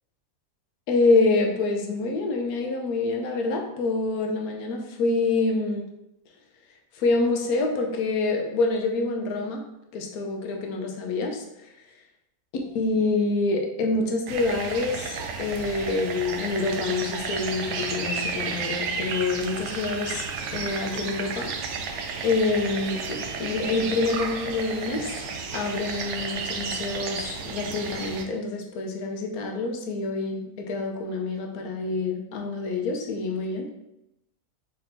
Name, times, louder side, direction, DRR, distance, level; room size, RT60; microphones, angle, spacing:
voice 1, 0.9-5.9 7.0-9.6 9.9-11.4 12.7-20.3 20.5-21.5 22.2-25.1 25.5-33.7, left 3 dB, 80° left, 2 dB, 1.2 m, -26 dB
sound 1, 14.3-28.2, right 5 dB, 65° right, 0.8 m, -32 dB
4.3 x 4.3 x 2.6 m, 0.87 s
omnidirectional pair, 1.6 m